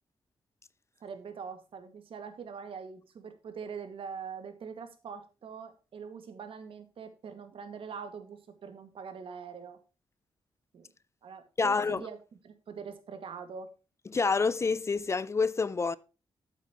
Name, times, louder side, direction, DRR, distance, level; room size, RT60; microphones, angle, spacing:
voice 1, 1.0-9.8 10.7-10.9 11.2-12.2 12.4-13.7, right 6 dB, 70° right, 1.9 m, -43 dB
voice 2, 11.6-12.0 14.1-16.0, left 4 dB, 30° left, 0.4 m, -27 dB
12.0 x 8.3 x 3.0 m
wide cardioid pair, 125°, 10 cm